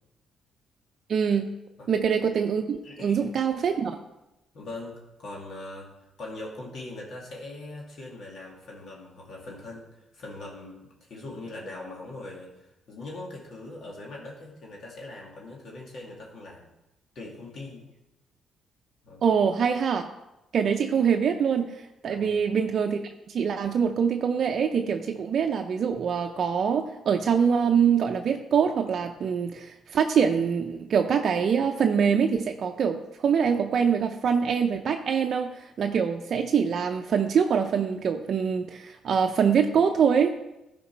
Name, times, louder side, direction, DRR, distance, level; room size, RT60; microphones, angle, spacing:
voice 1, 1.1-1.5 1.9-4.0 19.2-20.0 20.5-21.8 22.0-40.3, right 7 dB, 55° right, 4 dB, 0.6 m, -24 dB
voice 2, 2.8-3.2 4.5-5.9 6.2-16.7 17.1-17.8 19.0-19.2 22.0-22.4, left 2 dB, 60° left, -2 dB, 2.3 m, -41 dB
11.5 x 5.2 x 4.5 m, 0.95 s
cardioid pair, 90°, 0 cm